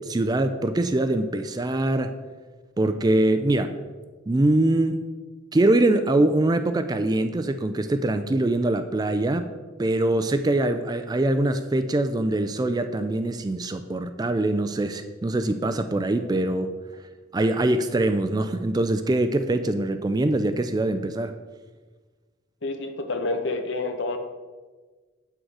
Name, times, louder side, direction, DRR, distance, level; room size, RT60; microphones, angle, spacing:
voice 1, 0.0-2.1 2.8-3.7 4.3-5.1 5.5-9.5 9.8-16.7 17.3-21.3, right 2 dB, 20° right, 9 dB, 0.3 m, -23 dB
voice 2, 22.6-24.2, left 2 dB, 60° left, 6 dB, 0.9 m, -28 dB
7.9 x 6.3 x 4.7 m, 1.4 s
head